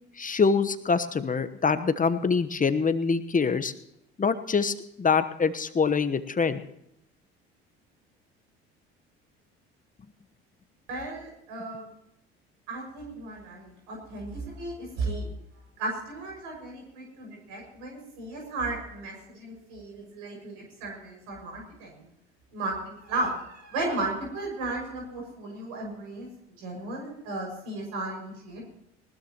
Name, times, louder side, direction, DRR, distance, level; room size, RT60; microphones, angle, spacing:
voice 1, 0.2-3.7 4.2-6.6, left 5 dB, 25° left, 10 dB, 1.2 m, -25 dB
voice 2, 10.9-11.9 12.7-15.3 15.8-22.1 22.5-28.7, right 2 dB, 70° right, 0 dB, 6.3 m, -35 dB
20.0 x 20.0 x 3.0 m, 0.81 s
hypercardioid pair, 60°, 32 cm